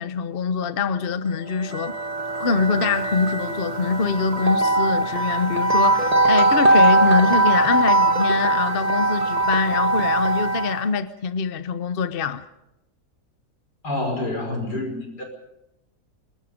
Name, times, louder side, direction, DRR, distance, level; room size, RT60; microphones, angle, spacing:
voice 1, 0.0-1.9 2.4-12.4, left 5 dB, 40° left, 1.0 m, -24 dB
sound 1, 1.4-10.9, right 2 dB, 25° right, 1.4 m, -21 dB
voice 2, 13.8-15.2, left 2 dB, 80° left, 6.0 m, -27 dB
26.5 x 21.0 x 5.2 m
omnidirectional pair, 1.7 m